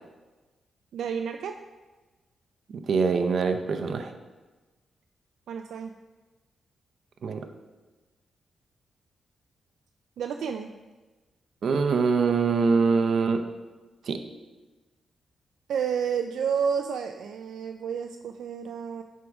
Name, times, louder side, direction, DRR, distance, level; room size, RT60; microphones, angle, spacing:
voice 1, 0.9-1.5 5.5-5.9 10.2-10.7 15.7-19.0, right 7 dB, 85° right, 6 dB, 0.3 m, -30 dB
voice 2, 2.7-4.1 7.2-7.5 11.6-13.4 14.1-14.2, right 5 dB, 60° right, 7 dB, 0.7 m, -24 dB
9.7 x 3.7 x 4.8 m, 1.2 s
cardioid pair, 90°, 0 cm